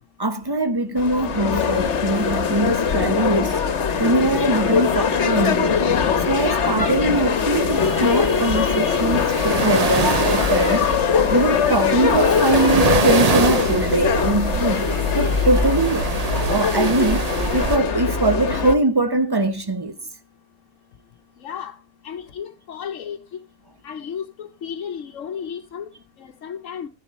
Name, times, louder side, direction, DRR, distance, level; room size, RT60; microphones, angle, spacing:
voice 1, 0.2-3.6 4.0-5.9 6.3-10.9 11.3-14.9 15.1-16.1 16.5-17.3 17.5-20.0, right 2 dB, 20° right, 1.1 m, -22 dB
sound 1, 1.0-18.7, left 6 dB, 65° left, 1.4 m, -21 dB
Thai Island Beach II, 7.5-17.8, right 6 dB, 40° right, 0.6 m, -26 dB
voice 2, 21.4-21.8 22.0-23.2 23.8-25.9 26.2-26.9, left 8 dB, 80° left, 1.2 m, -33 dB
14.5 x 10.5 x 4.2 m
omnidirectional pair, 1.3 m